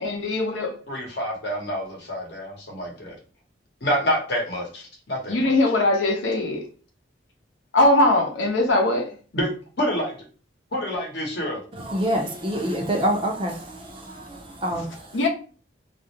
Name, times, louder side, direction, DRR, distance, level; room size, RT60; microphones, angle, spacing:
voice 1, 0.0-0.7 5.3-6.6 7.7-9.0 15.1-15.3, left 2 dB, 90° left, 0.7 m, -20 dB
voice 2, 0.9-3.1 3.8-5.6 9.3-9.5 9.8-10.1 10.7-11.6, equal, 60° left, 0.8 m, -27 dB
voice 3, 11.7-15.2, equal, 30° right, 0.5 m, -27 dB
2.4 x 2.0 x 2.8 m
head